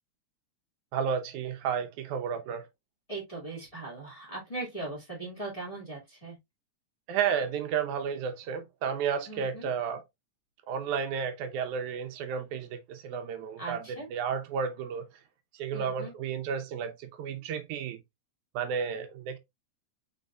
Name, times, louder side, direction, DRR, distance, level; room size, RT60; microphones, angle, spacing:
voice 1, 0.9-2.7 7.1-10.0 10.7-15.1 15.5-18.0 18.6-19.4, right 7 dB, 80° right, 2.2 m, -32 dB
voice 2, 3.1-6.4 9.3-9.7 13.6-14.1 15.7-16.1, right 2 dB, 15° left, 1.8 m, -39 dB
5.3 x 4.3 x 2.3 m
omnidirectional pair, 3.4 m